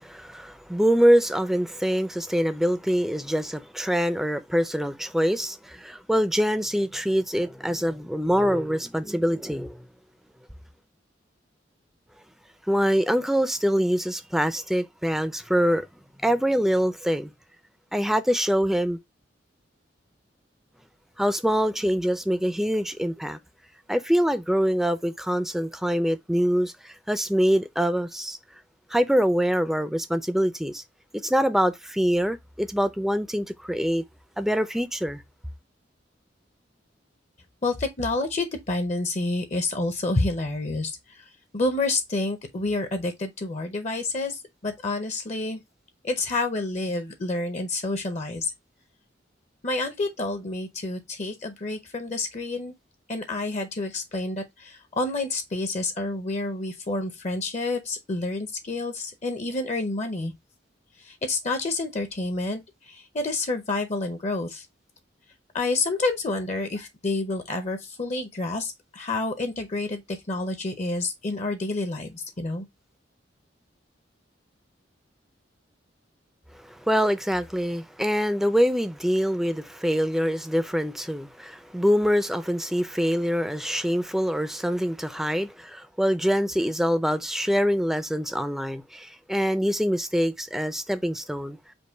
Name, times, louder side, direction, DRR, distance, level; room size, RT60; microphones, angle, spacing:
voice 1, 0.0-9.9 12.7-15.9 16.2-17.3 17.9-19.0 21.2-23.4 23.9-28.4 28.9-30.8 31.2-34.0 34.4-35.2 76.7-91.6, equal, ahead, 0.4 m, -24 dB
voice 2, 37.6-41.2 41.5-45.6 46.0-48.5 49.6-52.7 53.1-60.3 61.0-64.7 65.5-72.6, left 2 dB, 40° left, 0.6 m, -29 dB
5.3 x 2.2 x 4.4 m
head